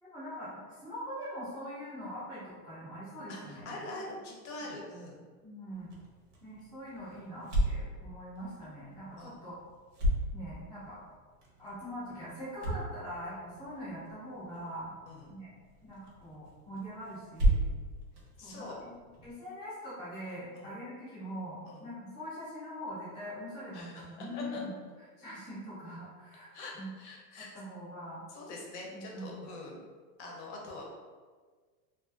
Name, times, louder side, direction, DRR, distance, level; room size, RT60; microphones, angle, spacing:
voice 1, 0.0-3.7 5.4-5.9 6.4-9.5 10.3-11.0 11.6-14.9 15.3-15.5 15.8-17.6 18.4-18.9 19.2-24.7 25.2-26.9 27.4-28.2 28.9-29.5, equal, 5° right, -13 dB, 0.4 m, -43 dB
voice 2, 3.3-5.2 9.2-9.4 15.1-15.3 18.4-18.8 20.5-20.7 21.7-21.8 23.7-24.1 24.3-24.6 26.5-27.5 28.3-29.8 30.2-30.9, left 2 dB, 50° left, -2 dB, 0.5 m, -44 dB
sound 1, 5.7-19.3, equal, 90° right, 0.9 m, -36 dB
2.4 x 2.4 x 2.3 m, 1.5 s
supercardioid pair, 155°, 48 cm